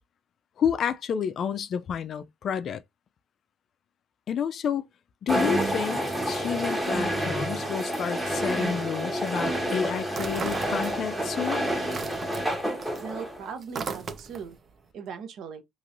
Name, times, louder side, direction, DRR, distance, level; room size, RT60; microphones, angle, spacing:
voice 1, 0.6-2.8 4.3-4.9 5.2-11.6, left 8 dB, 40° left, 0.3 m, -30 dB
sound 1, 5.3-13.5, equal, 10° right, 1.3 m, -29 dB
sound 2, 10.1-11.3 11.6-14.6, right 5 dB, 30° right, 0.5 m, -37 dB
voice 2, 13.0-14.6 14.9-15.6, right 6 dB, 55° right, 0.9 m, -39 dB
3.0 x 3.0 x 2.5 m
cardioid pair, 145°, 0 cm